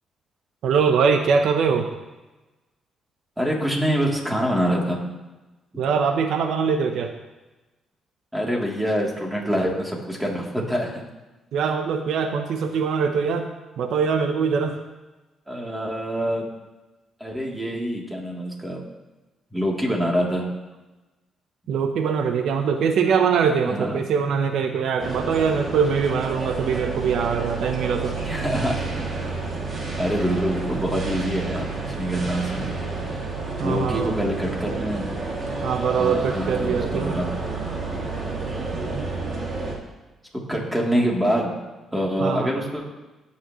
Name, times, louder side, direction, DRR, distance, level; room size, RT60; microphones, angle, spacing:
voice 1, 0.6-1.9 5.8-7.1 11.5-13.5 13.8-14.8 21.7-28.3 33.6-34.1 35.6-37.1 42.2-42.5, right 6 dB, 75° right, 6 dB, 0.8 m, -22 dB
voice 2, 3.4-5.0 8.3-11.0 15.5-16.5 17.2-18.8 19.5-20.5 23.6-24.0 28.2-29.4 29.7-32.7 33.6-35.1 35.9-37.3 37.9-38.0 38.7-39.0 40.5-41.6 41.9-42.8, equal, 10° right, -2 dB, 3.1 m, -25 dB
sound 1, 25.0-39.8, right 3 dB, 40° right, 2.5 m, -30 dB
18.0 x 8.7 x 3.1 m, 1.1 s
cardioid pair, 90°, 0 cm